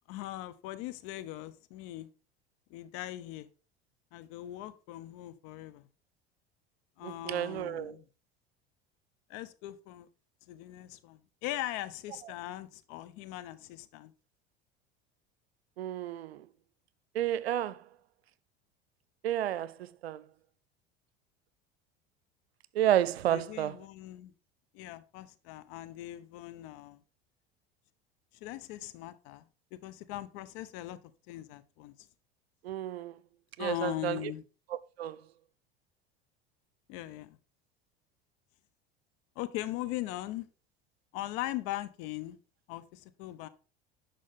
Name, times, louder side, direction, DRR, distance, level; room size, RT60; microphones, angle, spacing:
voice 1, 0.1-2.1 2.7-3.5 4.1-5.9 7.0-8.1 9.3-10.1 10.5-14.1 23.3-24.3 24.7-27.0 28.3-31.0 31.3-32.1 33.6-34.4 36.9-37.4 39.4-40.5 41.1-42.4 42.7-43.5, left 15 dB, 60° left, 0.9 m, -40 dB
voice 2, 7.0-7.9 15.8-16.4 17.1-17.8 19.2-19.7 20.0-20.2 22.7-23.7 32.6-33.2 33.6-34.2 35.0-35.2, right 11 dB, 85° right, 0.6 m, -31 dB
10.5 x 5.4 x 3.7 m
hypercardioid pair, 80°, 30 cm